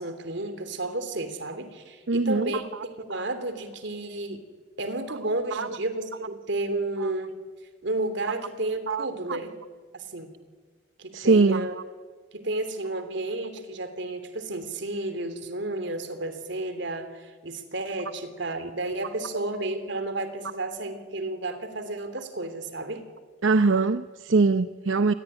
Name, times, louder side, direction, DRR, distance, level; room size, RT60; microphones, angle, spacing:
voice 1, 0.0-2.6 3.0-4.4 4.8-7.4 7.8-9.5 9.9-10.3 11.0-11.7 12.3-23.1, right 2 dB, 65° right, 10 dB, 3.2 m, -32 dB
voice 2, 2.1-2.6 5.5-5.8 7.0-7.1 8.9-9.4 11.1-11.7 23.4-25.1, right 3 dB, 90° right, 11 dB, 0.8 m, -22 dB
27.5 x 21.0 x 9.9 m, 1.5 s
head